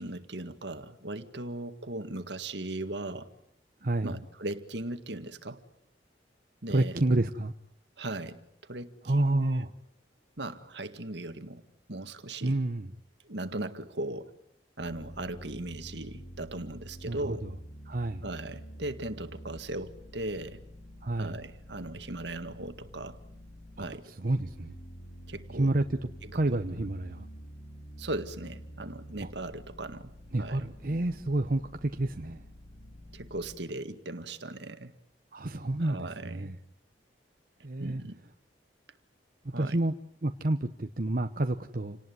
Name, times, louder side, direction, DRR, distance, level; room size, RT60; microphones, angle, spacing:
voice 1, 0.0-3.3 4.0-5.6 6.6-7.0 8.0-9.7 10.4-11.6 11.9-12.6 13.3-14.3 14.8-17.5 18.2-20.6 21.2-23.2 23.8-24.1 25.3-25.7 26.2-26.3 28.0-30.1 30.4-30.7 33.1-34.9 35.8-36.5 37.8-38.2 39.5-39.8, right 2 dB, 75° right, 9 dB, 1.9 m, -38 dB
voice 2, 3.8-4.1 6.7-7.5 9.0-9.7 12.4-12.9 17.1-17.5 17.9-18.2 21.0-21.4 23.8-24.7 25.5-26.0 26.3-27.3 29.2-29.3 30.3-32.4 35.3-36.6 37.6-38.0 39.4-39.9 40.2-42.0, right 2 dB, 50° right, 6 dB, 0.9 m, -29 dB
sound 1, 14.8-24.0 24.4-33.6, equal, 60° left, 4.1 m, -48 dB
28.5 x 19.0 x 9.5 m, 0.74 s
head